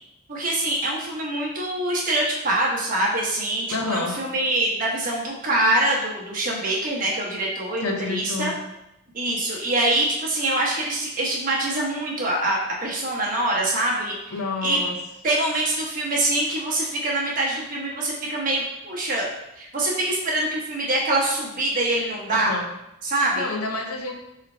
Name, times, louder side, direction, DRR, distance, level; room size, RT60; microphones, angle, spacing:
voice 1, 0.3-8.5 9.1-14.2 14.6-14.8 15.2-19.3 19.6-22.5 23.0-23.4, right 1 dB, 40° right, -3 dB, 1.0 m, -24 dB
voice 2, 3.7-4.2 7.8-8.5 14.3-15.0 22.3-22.7 23.4-24.1, left 3 dB, 85° left, 3 dB, 0.7 m, -28 dB
3.8 x 3.3 x 4.3 m, 0.87 s
head